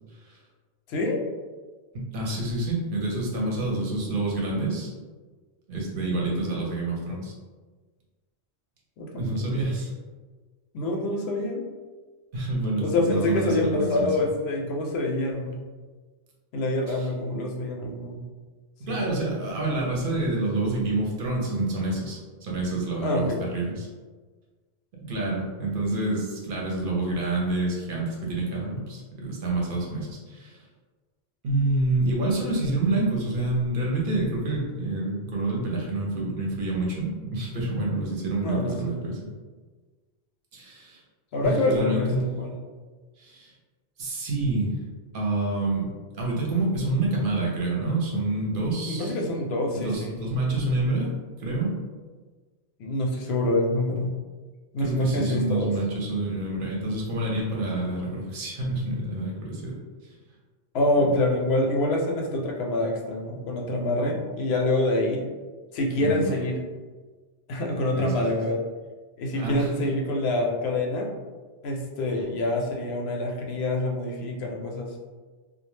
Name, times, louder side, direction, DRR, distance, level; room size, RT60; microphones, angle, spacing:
voice 1, 1.9-4.9 5.7-7.3 9.2-9.9 12.3-14.3 16.9-17.1 18.8-23.9 25.0-30.6 31.4-39.2 40.5-41.0 41.4-42.3 43.2-43.5 44.0-44.7 45.1-45.9 46.2-49.1 49.7-51.1 51.4-51.7 54.8-59.7 60.0-60.1 61.0-61.1 66.0-66.3 68.0-68.1 69.3-69.7, right 2 dB, 55° right, -2 dB, 0.8 m, -27 dB
voice 2, 9.0-9.6 10.7-11.6 12.8-15.6 16.5-18.2 18.9-19.2 23.0-23.4 38.4-39.0 41.3-42.5 48.9-50.1 52.8-54.1 54.7-55.7 60.7-65.3 65.7-66.6 67.5-68.6 69.2-71.1 71.6-75.0, left 1 dB, 70° left, 0 dB, 0.8 m, -26 dB
2.3 x 2.1 x 3.1 m, 1.4 s
omnidirectional pair, 1.1 m